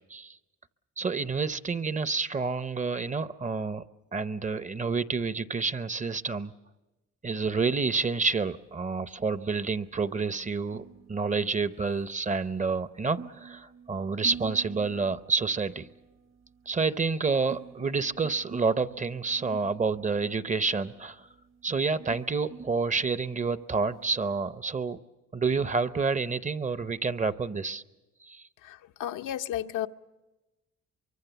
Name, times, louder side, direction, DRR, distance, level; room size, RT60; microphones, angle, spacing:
voice 1, 1.0-3.8 4.1-6.5 7.2-15.9 16.7-21.3 21.6-25.0 25.3-27.8 28.2-28.4, right 4 dB, 25° right, 14 dB, 0.7 m, -29 dB
sound 1, 8.5-24.6, right 6 dB, 45° right, 1.1 m, -49 dB
voice 2, 28.6-29.9, left 12 dB, 80° left, 7 dB, 0.7 m, -33 dB
24.0 x 23.5 x 6.9 m, 1.1 s
cardioid pair, 90°, 30 cm